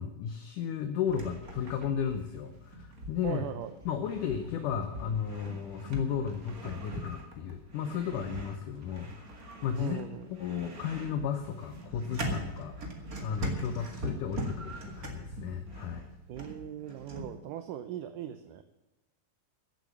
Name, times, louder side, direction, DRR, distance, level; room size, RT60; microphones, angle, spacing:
voice 1, 0.0-3.5 3.9-12.8 13.2-16.1, left 8 dB, 70° left, 7 dB, 2.1 m, -34 dB
sound 1, 1.1-17.3, right 1 dB, 35° right, 1.6 m, -41 dB
voice 2, 3.2-3.7 9.8-10.3 16.3-18.6, right 10 dB, 75° right, 9 dB, 2.0 m, -39 dB
15.5 x 8.0 x 7.1 m, 1.1 s
omnidirectional pair, 4.4 m